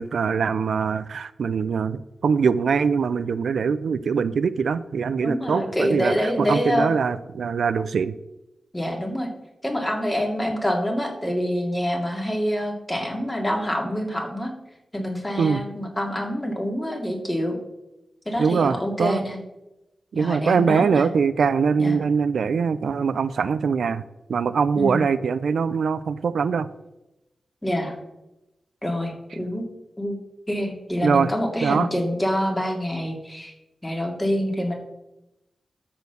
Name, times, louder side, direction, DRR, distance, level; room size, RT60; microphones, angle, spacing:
voice 1, 0.0-8.1 15.4-15.6 18.4-19.2 20.1-24.0 24.3-26.7 31.0-31.3 31.6-31.9, right 6 dB, 80° right, 14 dB, 0.4 m, -22 dB
voice 2, 5.2-6.9 8.7-9.3 9.6-14.5 14.9-17.6 18.3-19.4 20.1-21.1 21.8-22.0 24.8-25.0 27.6-27.9 28.8-29.6 30.0-30.2 30.5-33.5 33.8-34.7, equal, 15° left, 1 dB, 2.4 m, -26 dB
13.0 x 4.5 x 6.8 m, 0.95 s
wide cardioid pair, 90°, 0 cm